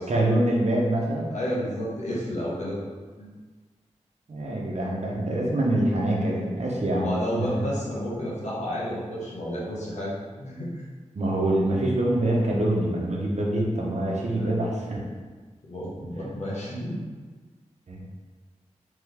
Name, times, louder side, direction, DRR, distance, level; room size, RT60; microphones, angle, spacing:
voice 1, 0.1-1.3 4.3-7.0 7.3-7.5 11.1-15.1 16.2-16.3 17.9-18.1, right 1 dB, 65° right, -3 dB, 0.9 m, -25 dB
voice 2, 1.3-2.8 3.2-3.3 6.4-6.5 7.0-10.1 10.4-10.8 14.3-14.5 15.7-17.0, equal, 65° left, -6 dB, 1.3 m, -31 dB
3.6 x 3.6 x 3.4 m, 1.4 s
wide cardioid pair, 65°, 12 cm